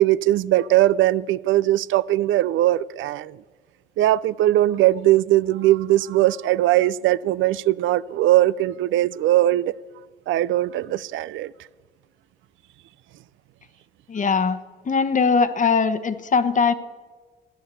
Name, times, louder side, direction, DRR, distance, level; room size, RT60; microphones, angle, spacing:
voice 1, 0.0-3.4 4.0-9.7 10.3-11.5, right 15 dB, 75° right, 0.4 m, -20 dB
voice 2, 14.1-16.7, left 5 dB, 40° left, 1.1 m, -21 dB
15.0 x 10.0 x 8.3 m
cardioid pair, 90°, 20 cm